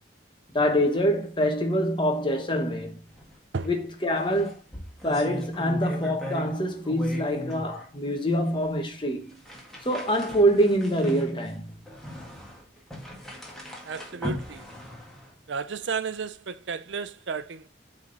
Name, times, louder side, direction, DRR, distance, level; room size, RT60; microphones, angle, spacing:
voice 1, 0.5-3.0 3.6-4.6 5.0-9.4 9.8-11.7, equal, 25° left, 1.2 m, -25 dB
sound 1, 3.1-3.4 3.6-3.7 4.1-6.6 6.8-7.9 8.5-8.6 9.3-15.4, equal, ahead, 1.6 m, -39 dB
voice 2, 13.8-14.7 15.5-17.7, right 5 dB, 85° right, 0.6 m, -33 dB
8.6 x 3.8 x 3.9 m
head